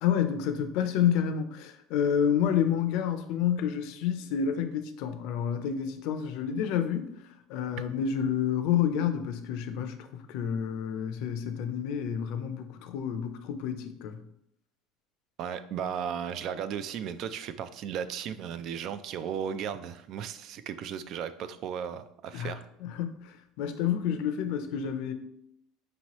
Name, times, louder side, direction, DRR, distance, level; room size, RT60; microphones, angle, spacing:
voice 1, 0.0-14.2 22.3-25.1, left 8 dB, 65° left, 0.5 m, -29 dB
voice 2, 15.4-22.6, right 8 dB, 50° right, 0.3 m, -35 dB
5.4 x 2.9 x 3.0 m
cardioid pair, 145°, 0 cm